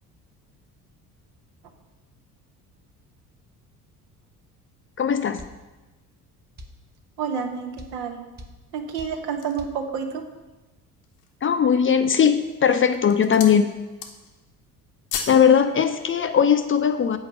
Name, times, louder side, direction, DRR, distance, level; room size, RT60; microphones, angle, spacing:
voice 1, 5.0-5.4 11.4-13.7 15.3-17.2, left 7 dB, 30° left, 9 dB, 0.6 m, -19 dB
sound 1, 5.4-5.6 6.6-6.8 7.8-8.0 8.4-8.6 9.0-9.2 9.6-9.8, left 1 dB, 20° right, 1.0 m, -41 dB
voice 2, 7.2-8.2 8.7-10.2, right 6 dB, 65° right, 5 dB, 1.1 m, -29 dB
sound 2, 8.7-9.7 10.3-10.4 10.9-11.4 12.1-12.5 12.8-13.6 13.9-14.4 14.7-15.5 15.8-15.9, left 6 dB, 70° left, 1.0 m, -35 dB
7.0 x 4.7 x 6.8 m, 1.1 s
hypercardioid pair, 55°, 45 cm